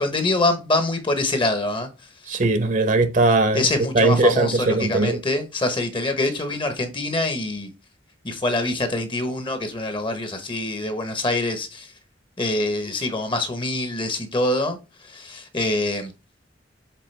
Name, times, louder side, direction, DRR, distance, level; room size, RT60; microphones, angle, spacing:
voice 1, 0.0-1.9 3.5-7.7 8.2-11.9 12.4-14.8 15.0-16.1, left 2 dB, 25° left, 1.0 m, -25 dB
voice 2, 2.3-3.6 3.9-5.2, right 2 dB, 45° right, 0.9 m, -19 dB
7.7 x 3.7 x 3.3 m
head